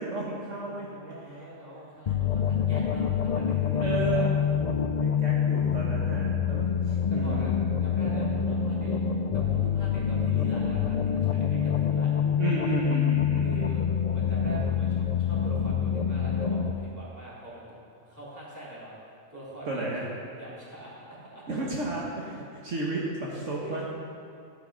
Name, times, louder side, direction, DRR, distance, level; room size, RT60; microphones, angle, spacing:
voice 1, 0.0-0.9 1.3-1.4 2.1-2.2 3.8-4.3 5.0-7.6 12.4-13.8 19.7-20.1 21.5-23.8, right 2 dB, 60° right, -4 dB, 1.7 m, -33 dB
voice 2, 0.6-4.3 6.5-12.1 13.4-17.6 17.9-18.9 19.3-21.7 22.9-23.0 23.6-23.8, right 1 dB, 10° right, -9 dB, 3.6 m, -43 dB
sound 1, 2.1-16.7, left 7 dB, 60° left, 0.4 m, -26 dB
14.5 x 8.8 x 5.1 m, 2.4 s
omnidirectional pair, 1.4 m